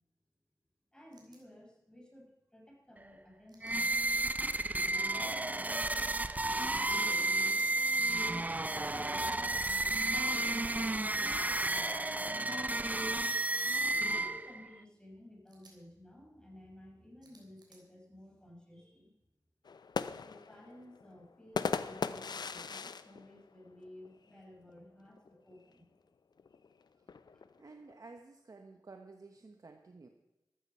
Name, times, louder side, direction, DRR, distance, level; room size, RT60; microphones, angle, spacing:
voice 1, 0.9-3.9 4.8-6.2 6.4-7.3 8.5-10.7 11.0-12.2 14.1-19.1 20.2-25.9 27.3-27.5, left 1 dB, 10° left, -1 dB, 6.0 m, -55 dB
sound 1, 1.1-1.4 3.5-4.2 5.8-6.1 7.4-7.7 9.2-9.8 11.1-11.3 12.4-12.6 14.0-14.2 15.5-15.8 17.2-17.8, right 3 dB, 90° right, 3.6 m, -63 dB
sound 2, 3.6-14.7, right 2 dB, 20° right, 0.5 m, -32 dB
sound 3, 19.7-24.3 24.7-24.8 25.1-25.6 26.4-27.9, left 5 dB, 85° left, 0.6 m, -39 dB
voice 2, 27.6-30.1, right 3 dB, 55° right, 5 dB, 1.1 m, -53 dB
14.0 x 14.0 x 5.6 m, 0.99 s
wide cardioid pair, 75°, 7 cm